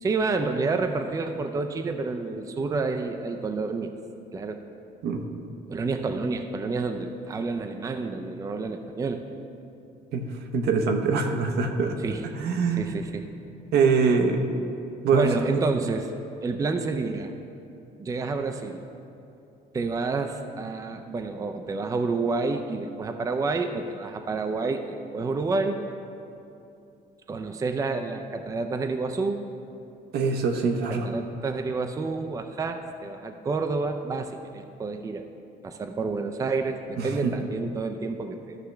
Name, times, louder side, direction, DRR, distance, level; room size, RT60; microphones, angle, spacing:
voice 1, 0.0-3.9 4.3-4.6 5.7-9.2 12.0-12.3 12.8-13.3 15.1-16.1 16.4-17.3 18.0-18.8 19.7-25.8 27.3-29.4 30.9-35.3 35.6-38.6, right 3 dB, 20° right, 6 dB, 0.4 m, -29 dB
voice 2, 5.0-5.4 10.1-10.3 10.5-12.0 12.3-13.0 13.7-14.4 15.0-15.3 30.1-31.1 37.0-37.3, right 5 dB, 75° right, 4 dB, 0.9 m, -24 dB
13.5 x 5.7 x 3.3 m, 2.7 s
cardioid pair, 110°, 17 cm